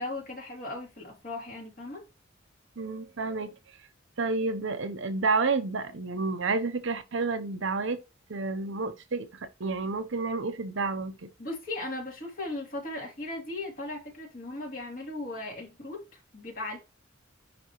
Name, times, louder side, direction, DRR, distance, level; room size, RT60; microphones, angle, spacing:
voice 1, 0.0-2.0 11.4-16.8, left 2 dB, 45° left, 2.9 m, -37 dB
voice 2, 2.8-3.5 4.2-8.0 8.3-11.3, right 3 dB, 65° right, 0.8 m, -30 dB
10.0 x 3.5 x 3.0 m
head